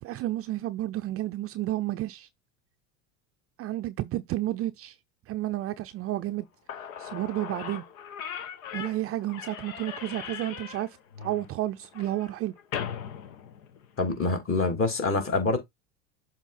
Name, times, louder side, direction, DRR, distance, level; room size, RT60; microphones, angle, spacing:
voice 1, 0.0-2.3 3.6-5.0 5.3-6.5 7.0-7.8 8.7-12.6, right 15 dB, 35° right, 0.5 m, -31 dB
Slam / Squeak, 6.4-6.5 6.7-14.2, left 8 dB, 75° left, 1.5 m, -39 dB
voice 2, 14.0-15.6, left 3 dB, 30° left, 2.9 m, -26 dB
7.1 x 3.7 x 4.2 m
hypercardioid pair, 95°, 42 cm